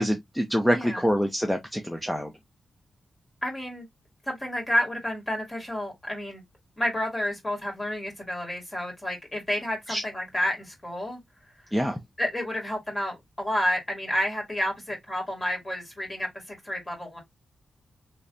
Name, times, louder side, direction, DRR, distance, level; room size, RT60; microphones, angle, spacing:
voice 1, 0.0-2.3 9.9-10.0 11.7-12.0, equal, 5° left, 0.6 m, -25 dB
voice 2, 0.7-1.1 3.4-3.9 4.3-6.4 6.8-11.2 12.2-17.2, left 1 dB, 20° left, 2.0 m, -30 dB
3.4 x 3.1 x 2.6 m
wide cardioid pair, 110°, 0 cm